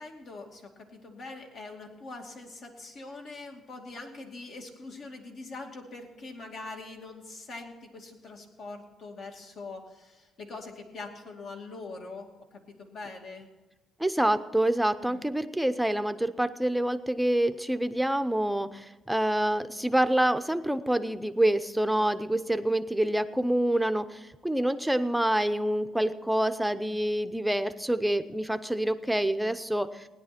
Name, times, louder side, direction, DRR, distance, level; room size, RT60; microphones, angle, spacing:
voice 1, 0.0-12.3 12.7-13.5 15.0-15.2, left 3 dB, 60° left, 2 dB, 2.4 m, -43 dB
voice 2, 14.0-30.1, right 1 dB, 5° right, 10 dB, 0.7 m, -27 dB
17.0 x 10.5 x 4.3 m, 1.2 s
cardioid pair, 110°, 0 cm